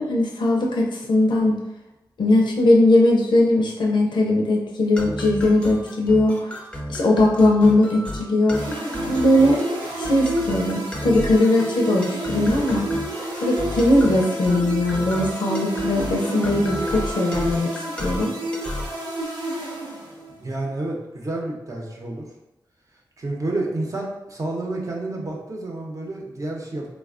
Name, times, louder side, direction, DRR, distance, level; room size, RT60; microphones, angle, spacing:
voice 1, 0.0-1.6 2.2-6.5 6.9-8.6 9.1-9.6 10.0-12.9 13.4-18.4, left 1 dB, 80° left, -1 dB, 0.5 m, -19 dB
sound 1, 5.0-19.0, left 1 dB, 15° left, 0.5 m, -34 dB
sound 2, 8.5-20.4, right 1 dB, 80° right, 0.6 m, -30 dB
voice 2, 20.4-22.3 23.2-26.9, right 2 dB, 45° right, -1 dB, 0.8 m, -29 dB
3.3 x 2.2 x 2.4 m, 0.98 s
cardioid pair, 50°, 8 cm